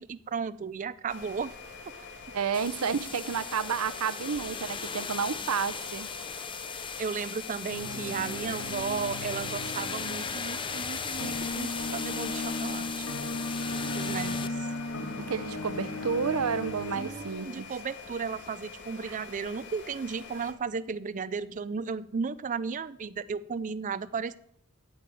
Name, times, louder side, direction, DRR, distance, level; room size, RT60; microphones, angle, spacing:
voice 1, 0.0-1.5 7.0-13.1 13.9-14.7 16.9-24.3, right 5 dB, 35° right, 0.4 m, -34 dB
sound 1, 1.1-20.5, left 4 dB, 55° left, 1.7 m, -46 dB
voice 2, 2.3-6.1 15.3-17.7 19.0-19.2, right 6 dB, 90° right, 0.7 m, -31 dB
sound 2, 2.5-14.5, left 6 dB, 25° left, 0.6 m, -37 dB
sound 3, 7.7-17.1, left 1 dB, 90° left, 1.8 m, -36 dB
9.4 x 7.5 x 9.3 m
head